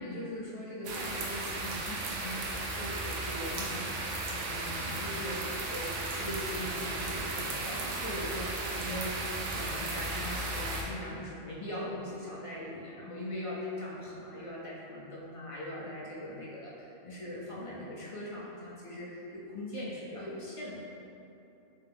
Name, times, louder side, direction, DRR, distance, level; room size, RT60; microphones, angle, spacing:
voice 1, 0.0-5.4 5.7-21.0, left 1 dB, 50° left, -6 dB, 0.4 m, -40 dB
sound 1, 0.8-10.8, right 2 dB, 80° right, 1.0 m, -35 dB
3.3 x 3.3 x 3.4 m, 2.9 s
omnidirectional pair, 1.2 m